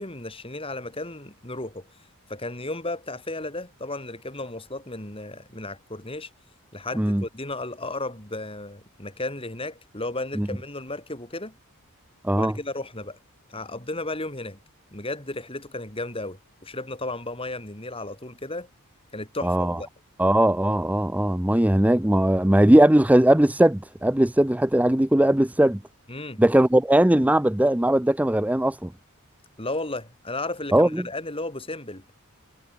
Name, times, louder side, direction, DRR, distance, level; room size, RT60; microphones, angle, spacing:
voice 1, 0.0-1.9 2.3-6.3 6.7-11.6 12.3-13.2 13.5-14.6 14.9-18.7 19.1-19.9 26.1-26.4 29.6-32.0, left 2 dB, 25° left, 7.0 m, -34 dB
voice 2, 19.4-19.8 20.2-25.8 26.4-28.9 30.7-31.1, right 1 dB, 5° right, 0.6 m, -19 dB
head